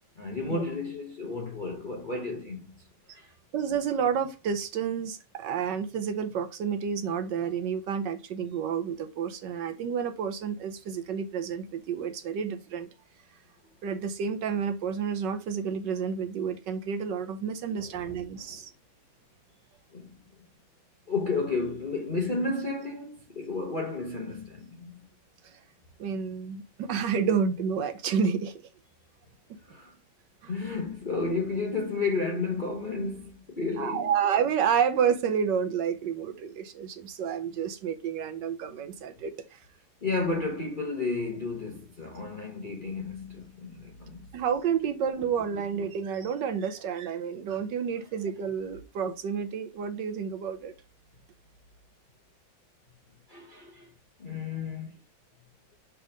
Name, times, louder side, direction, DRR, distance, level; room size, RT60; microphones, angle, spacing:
voice 1, 0.2-2.7 3.2-3.3 17.8-18.2 18.5-18.6 19.9-20.1 21.1-25.1 29.7-29.9 30.5-34.1 40.0-44.3 53.3-53.9 54.2-54.9, left 3 dB, 35° left, 0.8 m, -32 dB
voice 2, 3.5-12.9 13.8-18.7 25.4-25.5 26.0-28.5 30.4-30.5 33.8-39.6 44.3-50.7, right 7 dB, 70° right, 1.3 m, -30 dB
6.3 x 3.5 x 4.9 m
omnidirectional pair, 2.2 m